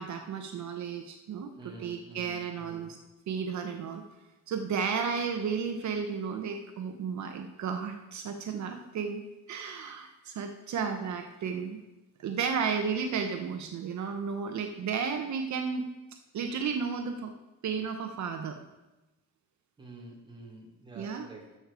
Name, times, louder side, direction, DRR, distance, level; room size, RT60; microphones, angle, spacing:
voice 1, 0.0-3.0 3.3-4.0 4.5-9.2 9.5-11.8 12.2-15.9 16.3-17.3 17.6-18.6 20.9-21.3, right 6 dB, 60° right, 5 dB, 0.9 m, -33 dB
voice 2, 1.6-2.9 19.8-21.6, right 2 dB, 15° right, -1 dB, 1.6 m, -48 dB
13.0 x 6.6 x 4.8 m, 1.0 s
cardioid pair, 180°, 32 cm